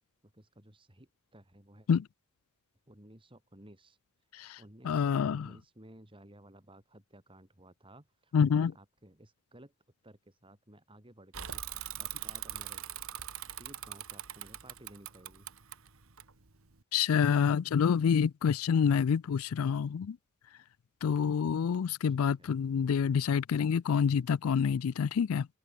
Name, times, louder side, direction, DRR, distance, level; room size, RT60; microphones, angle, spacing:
voice 1, 0.3-1.9 2.9-4.0 4.6-9.7 10.0-12.8 13.6-15.5 22.1-22.5, right 1 dB, 25° right, 4.1 m, -56 dB
voice 2, 4.8-5.5 8.3-8.7 16.9-20.2 21.0-25.5, left 7 dB, 80° left, 0.4 m, -27 dB
Bicycle / Mechanisms, 11.3-16.8, right 12 dB, 75° right, 1.8 m, -42 dB
head